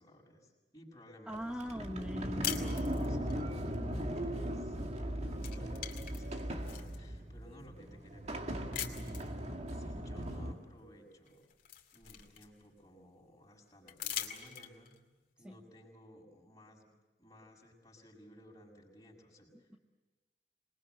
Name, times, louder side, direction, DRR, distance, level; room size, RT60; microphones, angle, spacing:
voice 1, 0.0-1.7 2.4-9.3 9.7-11.5 11.9-15.0 15.4-16.9 17.2-19.7, equal, 20° left, -1 dB, 6.3 m, -57 dB
voice 2, 1.3-2.6 15.4-15.5 19.7-19.8, equal, 5° right, 3 dB, 1.0 m, -41 dB
Sliding door, 1.3-10.5, equal, 40° right, 2.2 m, -38 dB
sound 1, 2.4-3.4 4.8-5.0 5.3-7.0 7.6-7.7 8.7-9.3 10.8-10.9 11.3-12.8 13.9-15.0, left 10 dB, 50° left, 2.4 m, -42 dB
26.5 x 21.0 x 8.0 m, 1.2 s
head